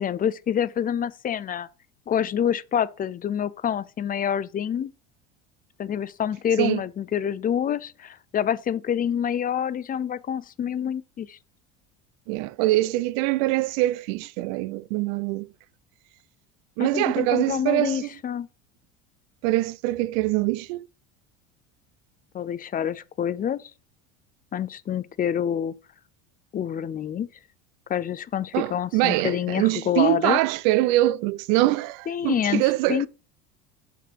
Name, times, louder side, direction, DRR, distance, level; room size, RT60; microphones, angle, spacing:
voice 1, 0.0-1.7 2.1-4.9 5.8-11.4 16.8-18.5 22.3-23.6 24.5-25.7 26.5-27.3 27.9-30.4 32.1-33.1, left 9 dB, 25° left, 0.5 m, -27 dB
voice 2, 12.3-15.5 16.8-18.1 19.4-20.8 28.5-33.1, right 17 dB, 70° right, 0.6 m, -24 dB
6.8 x 5.9 x 4.8 m
supercardioid pair, 100°, 34 cm